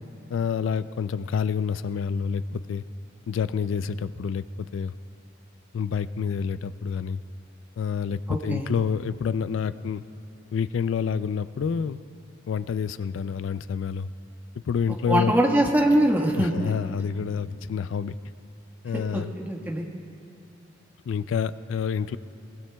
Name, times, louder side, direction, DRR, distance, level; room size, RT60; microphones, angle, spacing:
voice 1, 0.3-2.8 3.3-4.4 4.7-4.9 5.7-7.2 7.8-10.0 10.5-12.0 12.5-14.1 14.7-15.3 16.3-18.2 18.8-19.3 21.1-22.2, left 6 dB, 85° left, 14 dB, 0.3 m, -28 dB
voice 2, 8.3-8.7 15.1-16.5 18.9-19.8, right 1 dB, 10° right, -1 dB, 1.4 m, -23 dB
23.0 x 20.5 x 2.3 m, 2.5 s
head